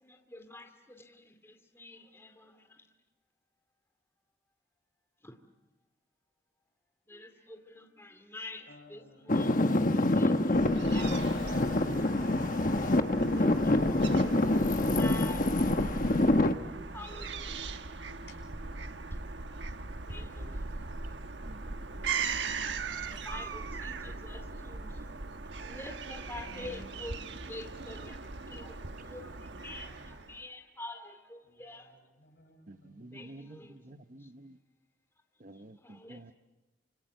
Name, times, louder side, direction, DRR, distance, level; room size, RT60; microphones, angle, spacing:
voice 1, 0.0-2.6 5.2-5.4 7.1-9.8 10.1-10.6 10.9-11.9 12.8-14.5 15.0-15.5 16.9-17.7 20.1-20.6 23.1-24.9 25.6-28.2 28.5-28.8 29.0-29.3 29.6-31.9 33.1-33.8 35.8-36.3, left 2 dB, 15° left, 2.3 m, -47 dB
voice 2, 8.7-10.7 16.1-18.9 19.9-21.6 25.6-27.9 29.2-30.2 31.4-33.1, equal, 70° left, 7.0 m, -58 dB
Traffic noise roadway noise / Engine, 9.3-16.5, left 2 dB, 45° left, 1.3 m, -26 dB
Fowl / Gull seagull, 10.5-30.4, right 4 dB, 85° right, 1.3 m, -39 dB
voice 3, 32.7-34.6 35.4-36.3, right 2 dB, 50° right, 1.0 m, -50 dB
29.0 x 26.0 x 7.8 m
head